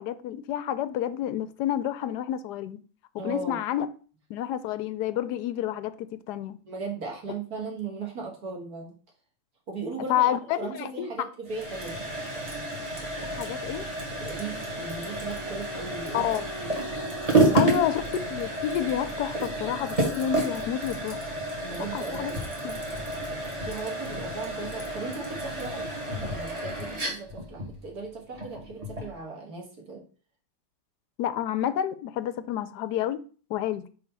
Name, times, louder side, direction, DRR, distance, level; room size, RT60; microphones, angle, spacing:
voice 1, 0.0-2.8 3.1-3.9 4.3-6.6 10.1-11.1 13.3-13.8 16.1-16.4 17.5-18.0 18.3-21.2 21.9-22.3 22.6-22.8 31.2-33.2 33.5-33.9, left 11 dB, 70° left, 13 dB, 1.0 m, -29 dB
voice 2, 3.2-3.6 6.7-9.0 9.7-10.3 10.6-12.0 14.2-16.2 16.6-16.7 17.3-17.6 21.6-22.4 23.6-25.9 26.2-30.0, right 4 dB, 55° right, 0 dB, 1.9 m, -37 dB
sound 1, 11.5-29.2, right 2 dB, 20° right, 1.7 m, -30 dB
Wind instrument woodwind instrument, 14.3-19.4, right 2 dB, ahead, 2.3 m, -44 dB
4.9 x 4.7 x 5.4 m, 0.40 s
omnidirectional pair, 2.0 m